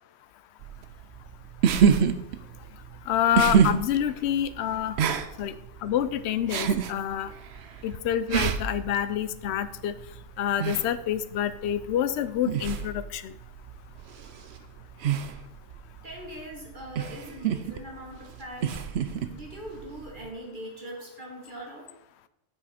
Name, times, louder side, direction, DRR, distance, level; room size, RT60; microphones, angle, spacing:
sound 1, 0.6-20.3, right 7 dB, 70° right, 0.9 m, -29 dB
voice 1, 3.1-4.9 5.4-5.5 5.8-7.3 7.8-9.9 10.4-13.3, left 10 dB, 75° left, 13 dB, 0.8 m, -27 dB
voice 2, 16.0-18.8 19.2-21.9, right 1 dB, 45° right, 0 dB, 1.7 m, -41 dB
8.9 x 7.4 x 4.2 m, 0.86 s
omnidirectional pair, 1.2 m